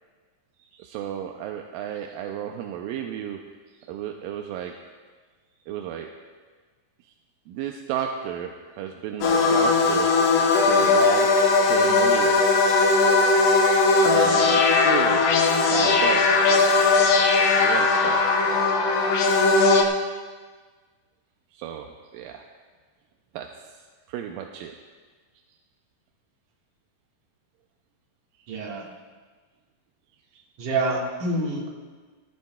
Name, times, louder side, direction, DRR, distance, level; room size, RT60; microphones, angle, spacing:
voice 1, 0.7-3.4 3.8-4.7 5.7-6.1 7.5-10.1 10.6-11.4 11.6-12.6 14.1-15.3 15.7-16.3 17.6-18.3 21.5-22.4 23.3-23.5 24.1-24.8 30.3-30.4, right 9 dB, 80° right, 3 dB, 2.2 m, -32 dB
sound 1, 9.2-19.8, left 4 dB, 70° left, 2.4 m, -19 dB
voice 2, 28.5-28.9 30.6-31.7, right 2 dB, 60° right, -2 dB, 3.0 m, -27 dB
18.5 x 14.5 x 2.3 m, 1.4 s
omnidirectional pair, 4.3 m